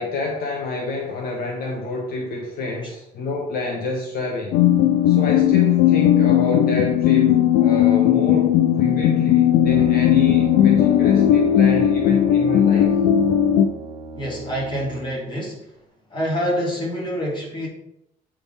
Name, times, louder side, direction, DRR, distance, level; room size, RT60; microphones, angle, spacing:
voice 1, 0.0-4.6 5.1-13.0, left 2 dB, 60° left, 0 dB, 1.2 m, -28 dB
sound 1, 4.5-13.7, left 10 dB, 85° left, 0.5 m, -17 dB
Brass instrument, 9.5-15.3, right 3 dB, 25° right, 1.0 m, -35 dB
voice 2, 14.1-15.7 16.1-17.7, equal, 30° left, -3 dB, 2.7 m, -26 dB
7.9 x 3.7 x 4.1 m, 0.81 s
cardioid pair, 110°, 17 cm